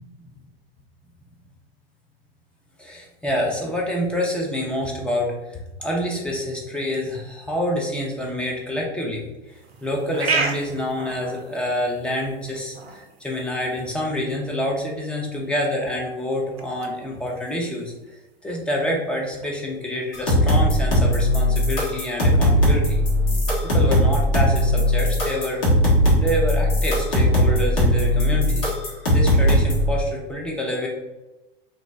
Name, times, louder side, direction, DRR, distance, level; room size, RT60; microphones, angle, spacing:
voice 1, 2.8-17.9 18.4-23.0 23.7-25.6 26.2-28.7 29.1-30.9, left 1 dB, 5° left, -2 dB, 0.5 m, -27 dB
sound 1, 9.5-23.6, right 4 dB, 80° right, 0.5 m, -36 dB
sound 2, 20.1-29.9, equal, 70° left, 1.1 m, -19 dB
2.7 x 2.0 x 3.1 m, 1.0 s
figure-of-eight pair, 85°, 30 cm